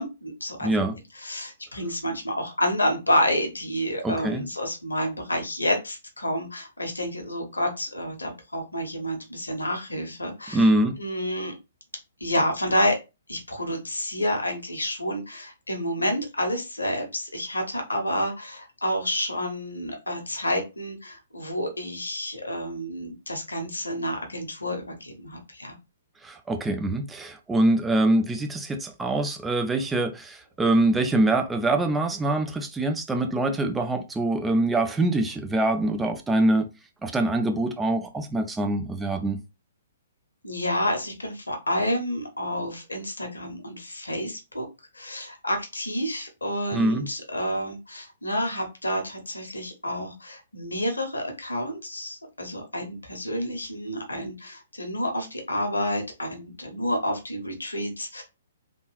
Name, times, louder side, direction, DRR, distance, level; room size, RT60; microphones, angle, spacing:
voice 1, 0.0-0.8 1.1-10.7 11.0-11.5 12.2-13.0 13.3-25.7 40.4-44.7 44.9-58.2, equal, 75° left, 1.1 m, -29 dB
voice 2, 0.6-1.0 4.0-4.4 10.5-11.0 26.2-36.7 37.0-39.4 46.7-47.1, right 2 dB, 10° right, 0.4 m, -24 dB
3.4 x 2.5 x 3.2 m
figure-of-eight pair, 120°, 0 cm